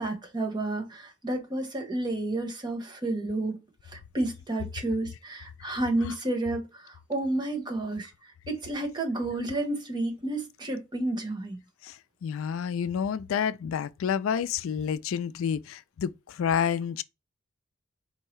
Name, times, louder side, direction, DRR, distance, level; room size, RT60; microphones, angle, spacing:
voice 1, 0.0-3.6 3.9-8.1 8.5-11.6, right 2 dB, 20° right, 1.0 m, -31 dB
voice 2, 11.8-17.0, left 7 dB, 85° left, 0.3 m, -29 dB
4.5 x 2.7 x 3.1 m
head